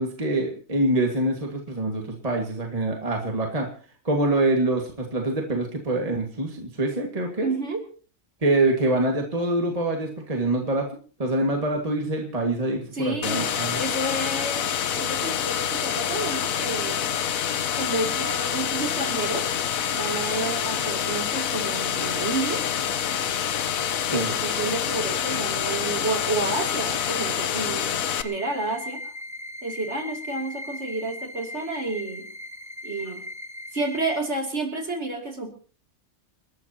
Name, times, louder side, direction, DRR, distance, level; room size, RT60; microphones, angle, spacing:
voice 1, 0.0-3.7 4.0-7.5 8.4-10.9 11.2-13.8 24.1-24.3, right 2 dB, 25° right, 1 dB, 2.0 m, -25 dB
voice 2, 7.4-7.8 12.9-13.4 13.7-14.7 15.0-17.0 17.7-19.5 19.9-22.6 24.1-27.9 28.2-29.1 29.6-32.3 32.8-33.2 33.7-35.5, right 2 dB, 45° right, 2 dB, 3.1 m, -30 dB
sound 1, 13.2-28.2, left 9 dB, 65° left, 1.2 m, -27 dB
sound 2, 28.2-34.2, left 1 dB, ahead, 0.9 m, -38 dB
29.0 x 12.5 x 2.9 m, 0.40 s
omnidirectional pair, 1.6 m